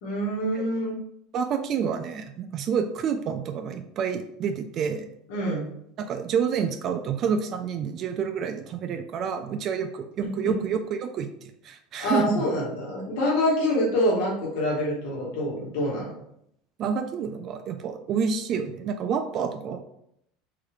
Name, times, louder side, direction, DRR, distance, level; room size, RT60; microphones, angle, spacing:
voice 1, 0.0-0.9 5.3-5.7 10.2-10.6 12.0-16.1, left 1 dB, 75° left, -3 dB, 1.4 m, -26 dB
voice 2, 1.3-5.1 6.0-12.4 16.8-19.8, right 6 dB, 45° right, 7 dB, 0.4 m, -28 dB
3.9 x 3.3 x 3.2 m, 0.74 s
supercardioid pair, 125°, 0 cm